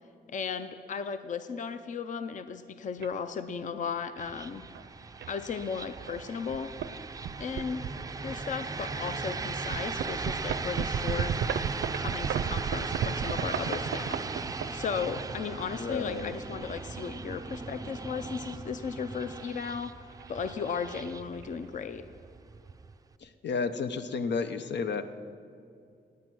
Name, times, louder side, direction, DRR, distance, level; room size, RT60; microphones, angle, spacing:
voice 1, 0.3-4.6 5.3-6.7 7.4-7.9 8.2-11.3 11.9-19.9 20.3-22.0, left 6 dB, 45° left, 11 dB, 0.5 m, -36 dB
sound 1, 3.0-3.1 4.0-4.2 4.7-4.8 5.2-5.3 6.1-6.2 6.5-6.9 7.2-8.5 9.0-9.1 9.7-15.2 16.1-17.0 18.7-19.9 20.1-20.4 20.7-20.8 21.1-21.5, right 8 dB, 85° right, 0.5 m, -34 dB
sound 2, 4.2-23.1, right 4 dB, 20° right, 0.4 m, -38 dB
voice 2, 15.8-16.3 23.2-25.0, left 5 dB, 85° left, 10 dB, 0.7 m, -32 dB
18.0 x 9.5 x 6.2 m, 2.4 s
wide cardioid pair, 180°, 18 cm